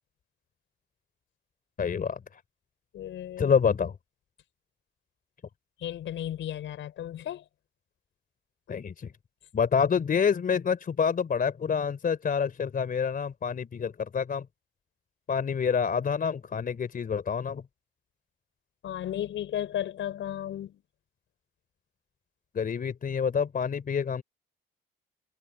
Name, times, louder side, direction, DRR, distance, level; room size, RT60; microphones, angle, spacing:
voice 1, 1.8-2.2 3.4-4.0 8.7-9.1 9.5-14.5 15.3-17.6 22.5-24.2, left 6 dB, 45° left, 3.6 m, -27 dB
voice 2, 2.9-3.5 5.8-7.4 18.8-20.8, left 11 dB, 75° left, 5.7 m, -34 dB
cardioid pair, 90°, 20 cm